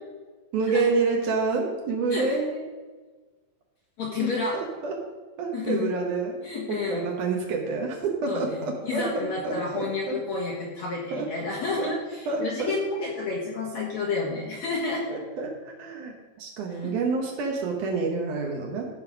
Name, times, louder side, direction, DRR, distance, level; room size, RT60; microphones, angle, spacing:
voice 1, 0.5-2.6 4.5-4.9 5.4-6.4 6.7-10.2 11.1-11.3 11.8-11.9 12.3-12.7 15.1-18.9, right 4 dB, 80° right, 0 dB, 1.8 m, -28 dB
voice 2, 4.0-4.6 5.5-5.9 6.4-7.1 8.3-15.2 16.8-16.9, left 3 dB, 55° left, -5 dB, 2.0 m, -30 dB
15.0 x 5.1 x 5.2 m, 1.3 s
omnidirectional pair, 5.2 m